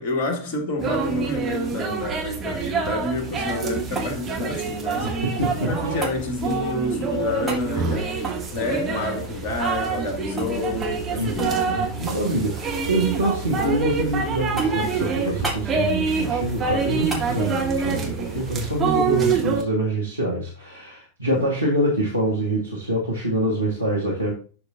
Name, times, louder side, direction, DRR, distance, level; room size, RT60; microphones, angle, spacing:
voice 1, 0.0-5.1 5.7-8.2 8.5-11.6 21.3-21.4, left 2 dB, 40° left, 2.3 m, -29 dB
sound 1, 0.8-18.8, equal, 15° left, 2.3 m, -40 dB
sound 2, 0.8-19.6, right 5 dB, 25° right, 2.4 m, -26 dB
sound 3, 3.9-5.4 6.0-6.2 7.4-7.7 8.2-10.1 10.4-10.5 10.8-11.0 11.4-12.3 12.6-13.2 13.6-14.1 14.6-14.9 15.4-15.7 17.1-17.3 19.7-19.8, right 3 dB, 5° right, 3.9 m, -34 dB
voice 2, 5.0-6.0 11.2-24.3, right 1 dB, 85° right, 1.7 m, -25 dB
12.0 x 4.9 x 2.7 m
figure-of-eight pair, 90°, 0 cm